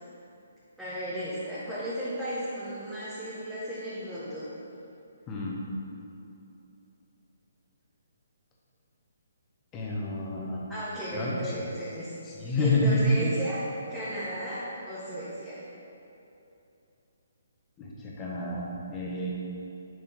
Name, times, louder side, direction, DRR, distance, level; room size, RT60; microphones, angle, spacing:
voice 1, 0.8-4.5 10.7-12.1 12.6-13.6 13.9-15.6, right 1 dB, ahead, -13 dB, 1.4 m, -35 dB
voice 2, 5.3-5.6 9.7-10.6 11.1-11.7 12.3-13.3 17.8-19.3, left 1 dB, 20° left, -4 dB, 1.4 m, -28 dB
6.9 x 6.6 x 3.7 m, 2.8 s
figure-of-eight pair, 140°, 0 cm